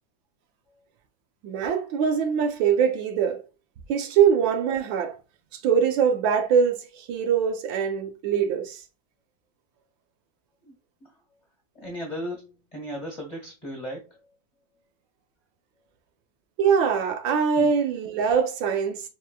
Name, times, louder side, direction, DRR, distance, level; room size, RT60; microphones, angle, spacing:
voice 1, 1.4-3.4 3.9-5.2 5.6-8.8 16.6-19.0, right 7 dB, 90° right, 1.5 m, -23 dB
voice 2, 11.7-14.1 17.6-17.7, equal, 25° left, 1.1 m, -36 dB
4.6 x 3.4 x 2.3 m
omnidirectional pair, 2.0 m